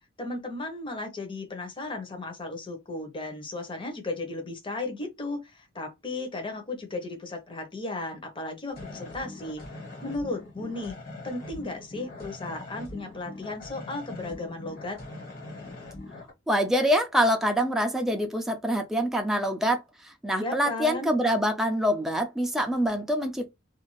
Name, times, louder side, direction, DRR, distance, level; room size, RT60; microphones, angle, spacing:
voice 1, 0.2-9.6 10.0-15.0 20.3-21.1, left 2 dB, 25° left, 0.8 m, -35 dB
sound 1, 8.7-16.3, left 2 dB, 50° left, 1.4 m, -42 dB
voice 2, 16.5-23.5, equal, ahead, 0.3 m, -25 dB
2.5 x 2.3 x 3.0 m
head